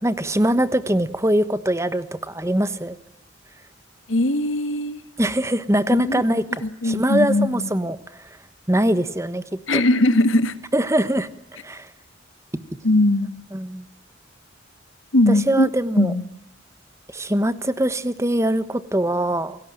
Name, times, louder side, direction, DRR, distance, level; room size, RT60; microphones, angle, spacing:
voice 1, 0.0-3.0 5.2-8.0 8.7-9.4 9.7-9.8 10.7-11.3 11.6-11.9 13.5-13.9 15.3-16.1 17.1-19.6, right 1 dB, 15° right, 14 dB, 1.2 m, -22 dB
voice 2, 4.1-5.0 5.9-6.2 6.6-7.7 9.7-10.5 12.8-13.4 15.1-15.7 15.9-16.2, left 1 dB, 75° left, 12 dB, 1.8 m, -20 dB
28.0 x 18.0 x 9.0 m, 0.83 s
head